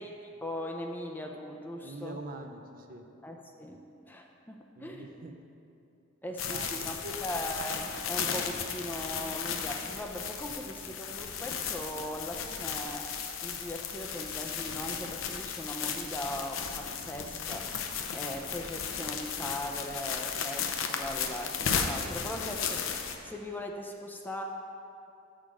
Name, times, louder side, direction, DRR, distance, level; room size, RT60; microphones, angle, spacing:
voice 1, 0.0-2.2 3.2-5.1 6.2-6.9 7.2-13.1 13.4-17.7 18.1-22.9 23.2-24.4, left 1 dB, 10° left, 2 dB, 0.4 m, -39 dB
voice 2, 1.8-3.1 4.8-5.4 6.4-7.2, right 2 dB, 45° right, 4 dB, 0.5 m, -44 dB
sound 1, 6.4-23.2, left 6 dB, 80° left, 0.6 m, -35 dB
7.3 x 6.5 x 5.1 m, 2.7 s
head